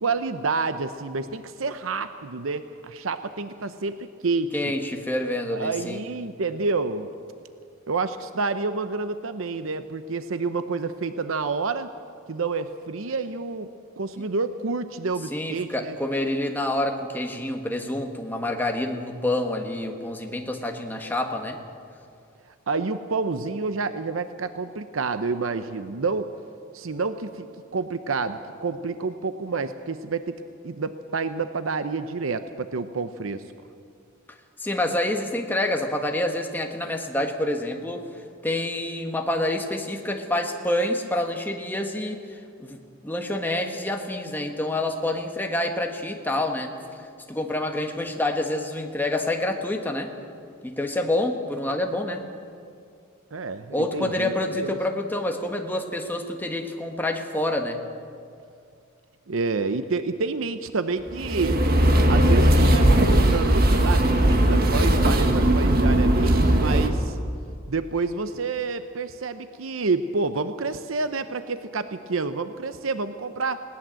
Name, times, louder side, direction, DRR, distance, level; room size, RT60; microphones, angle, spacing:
voice 1, 0.0-4.7 5.5-7.1 7.9-11.9 12.3-16.0 22.7-26.3 26.7-27.5 27.7-33.4 53.3-54.8 59.3-61.6 62.1-67.2 67.7-73.6, right 4 dB, 90° right, 10 dB, 0.8 m, -29 dB
voice 2, 4.5-6.0 15.3-21.6 34.6-38.0 38.4-42.2 42.6-46.7 47.3-50.1 50.6-52.2 53.7-57.8, left 1 dB, 10° left, 3 dB, 1.5 m, -27 dB
sound 1, 61.1-66.9, right 1 dB, 50° right, 1.8 m, -19 dB
20.0 x 18.5 x 7.6 m, 2.3 s
head